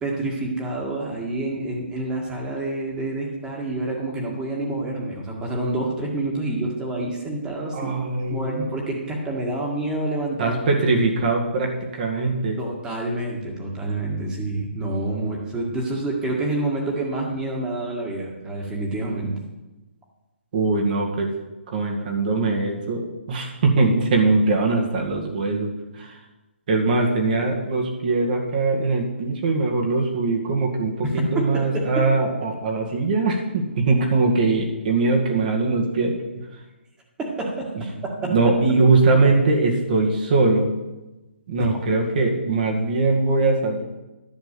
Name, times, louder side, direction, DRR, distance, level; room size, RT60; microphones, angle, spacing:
voice 1, 0.0-7.9 8.3-10.6 12.6-19.4 27.4-27.5 31.0-32.1 32.4-32.5 37.2-38.3 41.6-41.8, right 2 dB, 10° right, -1 dB, 2.0 m, -28 dB
voice 2, 7.7-8.6 10.4-12.6 20.5-21.3 21.7-26.2 26.7-36.2 38.3-40.7 41.5-43.8, right 3 dB, 45° right, 1 dB, 2.0 m, -21 dB
10.5 x 6.4 x 6.9 m, 1.1 s
hypercardioid pair, 150°, 7 cm